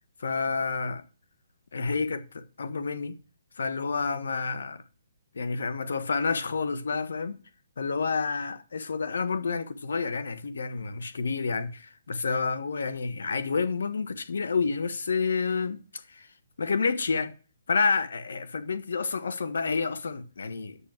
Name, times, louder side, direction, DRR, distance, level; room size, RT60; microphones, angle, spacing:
voice 1, 0.2-1.0 1.7-3.2 3.6-4.8 5.3-7.4 7.8-15.8 16.1-16.3 16.6-17.3 17.7-20.8, left 4 dB, 80° left, 1.4 m, -29 dB
8.4 x 6.4 x 7.5 m
hypercardioid pair, 155°, 0 cm